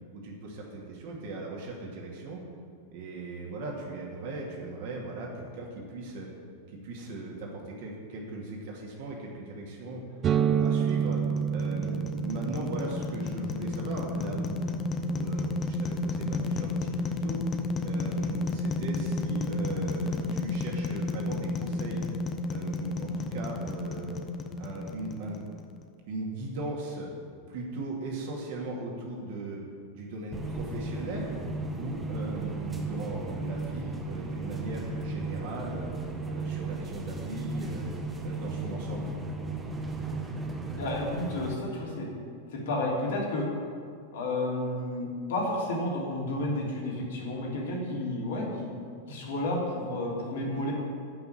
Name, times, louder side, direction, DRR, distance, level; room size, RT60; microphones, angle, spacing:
voice 1, 0.1-2.4 2.9-6.3 6.8-10.0 10.4-11.2 11.5-14.6 15.0-17.4 17.8-22.0 22.5-24.2 24.6-25.5 26.1-27.1 27.5-29.6 29.9-31.3 31.8-35.9 36.2-37.9 38.2-39.1, right 2 dB, 50° right, -1 dB, 2.5 m, -38 dB
sound 1, 10.2-17.8, right 7 dB, 30° right, 0.5 m, -32 dB
sound 2, 10.6-25.8, left 3 dB, 25° left, 0.9 m, -32 dB
sound 3, 30.3-41.5, right 2 dB, 15° right, 1.3 m, -35 dB
voice 2, 40.8-42.1 42.5-43.5 44.1-48.7 49.1-50.7, left 1 dB, 60° left, -2 dB, 3.2 m, -31 dB
12.0 x 6.0 x 8.8 m, 2.3 s
figure-of-eight pair, 90°, 0 cm